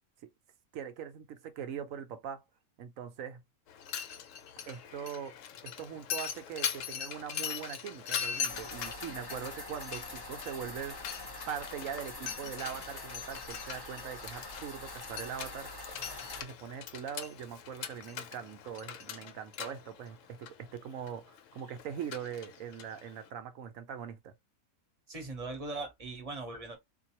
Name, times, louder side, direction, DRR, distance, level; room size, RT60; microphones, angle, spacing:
voice 1, 0.7-2.4 2.8-3.4 4.7-5.4 5.6-11.0 11.5-15.7 16.4-24.3, right 8 dB, 65° right, 1.0 m, -41 dB
Mechanisms, 3.7-23.3, left 8 dB, 65° left, 0.9 m, -41 dB
sound 1, 8.5-16.4, left 2 dB, 20° left, 0.7 m, -45 dB
voice 2, 25.1-26.8, right 3 dB, 30° right, 0.9 m, -40 dB
3.8 x 2.6 x 2.8 m
omnidirectional pair, 1.6 m